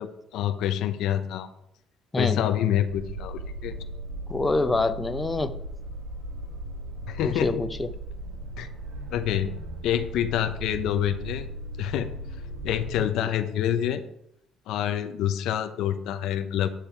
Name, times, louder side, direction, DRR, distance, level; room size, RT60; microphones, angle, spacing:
voice 1, 0.0-1.5 2.2-3.7 7.1-7.6 8.6-8.7 9.1-9.5 9.8-11.5 11.8-12.1 12.6-14.0 14.7-16.7, left 10 dB, 75° left, 8 dB, 0.7 m, -27 dB
sound 1, 2.9-13.0, right 1 dB, 90° right, 1.6 m, -37 dB
voice 2, 4.3-5.6 7.2-7.9 13.0-13.1, left 2 dB, 20° left, 9 dB, 0.7 m, -26 dB
9.1 x 6.7 x 4.5 m, 0.75 s
supercardioid pair, 70°, 0 cm